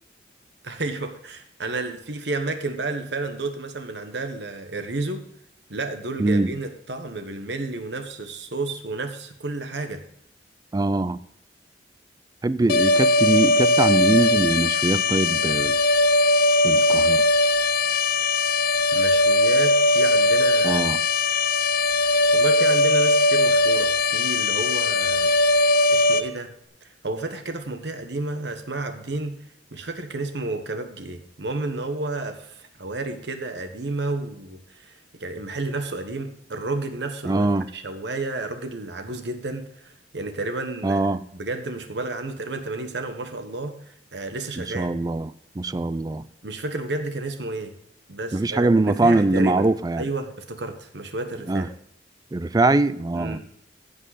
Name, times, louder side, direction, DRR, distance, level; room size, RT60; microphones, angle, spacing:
voice 1, 0.6-5.2 5.7-10.0 18.9-20.9 22.3-25.3 25.9-26.5 27.0-29.4 29.7-41.0 41.3-44.9 46.4-47.7 48.1-49.7 50.0-51.7 53.1-53.4, right 2 dB, 65° right, 1.2 m, -31 dB
voice 2, 6.2-6.5 10.7-11.2 12.4-15.8 16.6-17.2 20.6-21.0 37.2-37.7 40.8-41.2 44.6-46.2 48.3-50.0 51.5-51.7 52.3-53.4, right 2 dB, 20° right, 0.3 m, -22 dB
sound 1, 12.7-26.2, left 2 dB, 55° left, 0.7 m, -19 dB
15.5 x 5.5 x 4.1 m
head